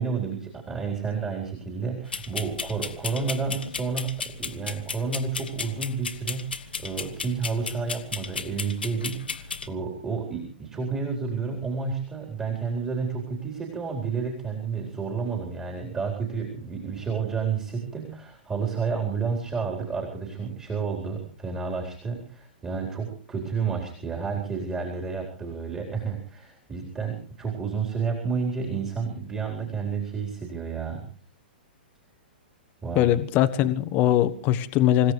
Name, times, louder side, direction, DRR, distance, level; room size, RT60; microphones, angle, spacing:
voice 1, 0.0-31.0 32.8-33.1, right 5 dB, 15° right, 4.2 m, -30 dB
sound 1, 2.1-9.7, left 5 dB, 75° left, 1.3 m, -35 dB
voice 2, 32.9-35.1, left 12 dB, 35° left, 1.2 m, -21 dB
26.5 x 16.0 x 3.3 m
figure-of-eight pair, 110°, 5 cm